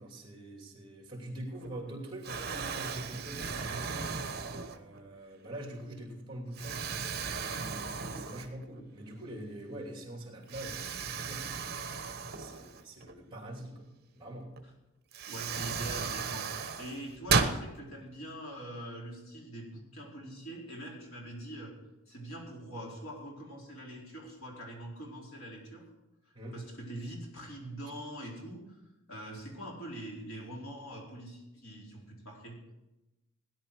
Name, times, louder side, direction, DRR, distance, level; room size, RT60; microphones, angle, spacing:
voice 1, 0.0-4.1 4.6-11.8 12.4-13.9 14.1-14.5 26.3-26.6, right 1 dB, 25° right, 1 dB, 2.9 m, -44 dB
Explosion, 1.5-1.9 2.2-5.1 5.7-5.8 6.5-8.8 9.2-9.3 10.5-13.1 14.6-14.7 15.1-17.6, right 5 dB, 50° right, 1.1 m, -35 dB
voice 2, 15.3-21.7 22.1-25.9 26.5-28.8 29.1-32.6, right 1 dB, 80° left, -2 dB, 4.3 m, -43 dB
17.0 x 10.5 x 4.8 m, 0.97 s
head